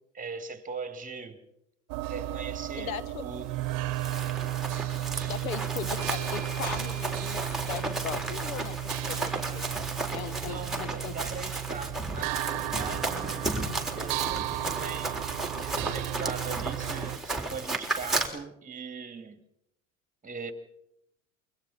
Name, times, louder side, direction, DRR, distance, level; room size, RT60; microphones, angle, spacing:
voice 1, 0.1-1.4 2.1-2.9 3.2-3.5 10.4-19.4 20.2-20.5, right 5 dB, 20° right, 8 dB, 2.8 m, -40 dB
sound 1, 1.9-17.2, right 15 dB, 55° right, 1.1 m, -34 dB
voice 2, 2.8-3.2 5.2-9.6 10.1-11.1, left 10 dB, 80° left, 13 dB, 1.4 m, -38 dB
Run, 3.7-18.3, right 2 dB, ahead, 3.9 m, -34 dB
sound 2, 6.0-10.8, right 2 dB, 55° left, 4.1 m, -48 dB
28.0 x 24.0 x 4.3 m, 0.81 s
hypercardioid pair, 85°, 41 cm